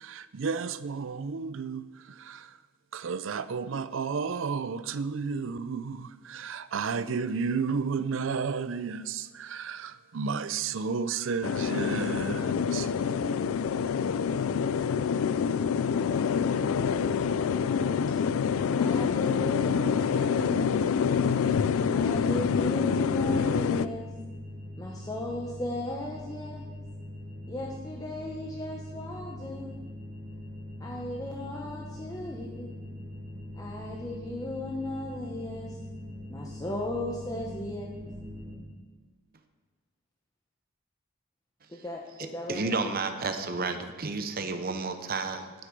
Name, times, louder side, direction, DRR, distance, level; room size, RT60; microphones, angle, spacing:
voice 1, 0.0-2.6 2.9-12.9, right 5 dB, 70° right, 0.5 m, -32 dB
sound 1, 11.4-23.9, left 6 dB, 85° left, 0.4 m, -26 dB
voice 2, 15.9-18.1 18.7-21.0 21.9-24.1 24.8-26.7 27.5-29.8 30.8-32.7 33.5-35.8 36.3-38.0 41.7-42.7, left 1 dB, 15° left, 0.9 m, -36 dB
sound 2, 21.1-38.5, left 1 dB, 15° right, 3.3 m, -42 dB
voice 3, 42.5-45.5, right 3 dB, 45° right, 0.9 m, -31 dB
10.5 x 8.3 x 5.3 m
head